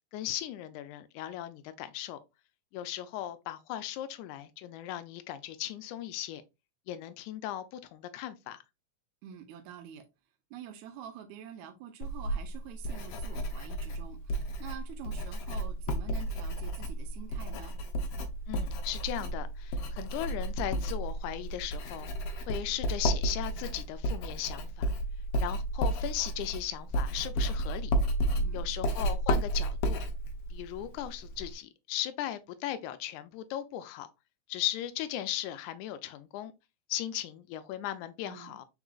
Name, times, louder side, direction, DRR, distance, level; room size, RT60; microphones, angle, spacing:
voice 1, 0.1-2.2 2.7-6.4 6.9-8.6 18.5-22.1 22.5-24.9 25.4-28.0 28.5-30.0 30.5-34.1 34.5-36.5 36.9-38.6, left 12 dB, 90° left, 2.0 m, -37 dB
voice 2, 9.2-10.0 10.5-17.7 28.4-29.0 38.3-38.6, right 9 dB, 85° right, 2.1 m, -47 dB
Writing, 12.0-31.5, right 1 dB, 70° left, 1.5 m, -32 dB
4.9 x 4.4 x 2.3 m
omnidirectional pair, 3.4 m